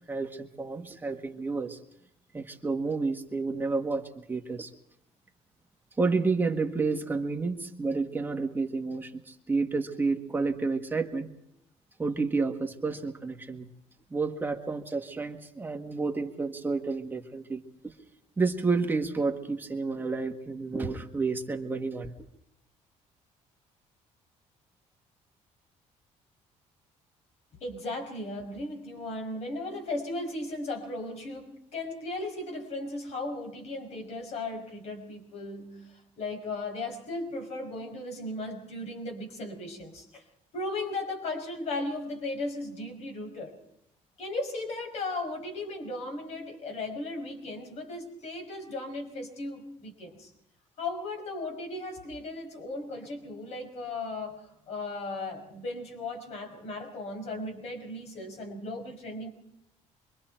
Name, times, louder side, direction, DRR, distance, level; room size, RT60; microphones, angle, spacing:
voice 1, 0.1-1.8 2.3-4.7 6.0-11.3 12.0-13.7 14.1-17.9 18.4-22.1, right 4 dB, 15° right, 4 dB, 1.7 m, -30 dB
voice 2, 27.6-40.2 40.5-43.6 44.2-50.3 50.8-59.3, left 2 dB, 55° left, 3 dB, 5.9 m, -36 dB
27.0 x 23.5 x 4.5 m, 0.76 s
cardioid pair, 140°, 13 cm